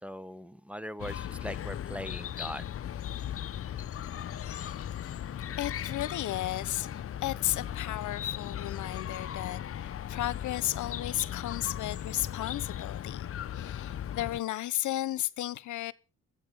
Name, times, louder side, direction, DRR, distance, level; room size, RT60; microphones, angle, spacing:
voice 1, 0.0-2.7, equal, 5° right, 1.2 m, -40 dB
Chirp tweet, 1.0-14.4, left 10 dB, 50° left, 0.8 m, -37 dB
voice 2, 5.6-6.9 7.2-15.9, left 14 dB, 80° left, 1.1 m, -34 dB
21.5 x 9.1 x 6.6 m
cardioid pair, 90°, 30 cm